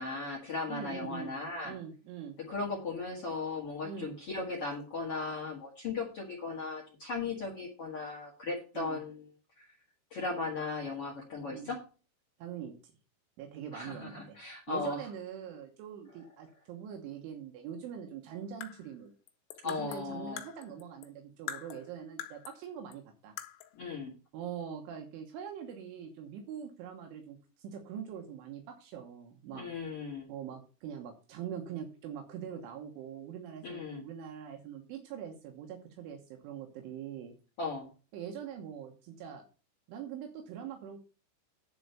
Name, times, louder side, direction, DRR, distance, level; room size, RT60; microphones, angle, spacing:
voice 1, 0.0-1.8 2.5-9.2 10.1-11.8 13.7-15.1 19.6-20.4 23.7-24.1 29.5-30.3 33.6-34.0 37.6-37.9, left 3 dB, 70° left, 0 dB, 1.3 m, -37 dB
voice 2, 0.7-1.3 1.6-2.4 3.8-4.1 8.8-9.0 11.5-11.7 12.4-12.8 13.4-14.4 14.7-19.1 19.6-23.4 24.3-29.7 30.3-37.3 38.1-39.4 39.9-41.0, right 8 dB, 80° right, 3 dB, 3.6 m, -43 dB
sound 1, 18.4-21.2 21.5-22.7 22.9-23.0 23.4-23.8, left 10 dB, 90° left, 3.6 m, -45 dB
11.0 x 4.6 x 6.8 m, 0.35 s
omnidirectional pair, 5.7 m